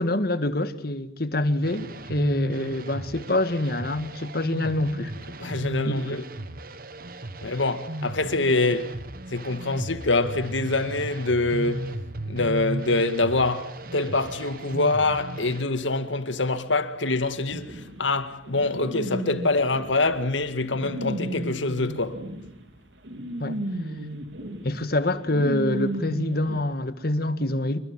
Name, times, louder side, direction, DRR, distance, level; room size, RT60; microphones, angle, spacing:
voice 1, 0.0-5.1 5.9-6.2 23.4-23.6 24.6-27.8, left 1 dB, 55° left, 1.8 m, -26 dB
sound 1, 1.6-15.6, right 1 dB, 50° right, 1.4 m, -35 dB
voice 2, 5.4-6.2 7.4-9.0 9.3-11.9 12.3-22.2, left 2 dB, 80° left, 2.1 m, -25 dB
sound 2, 17.5-26.6, right 1 dB, 70° right, 3.3 m, -34 dB
28.5 x 24.5 x 7.4 m
head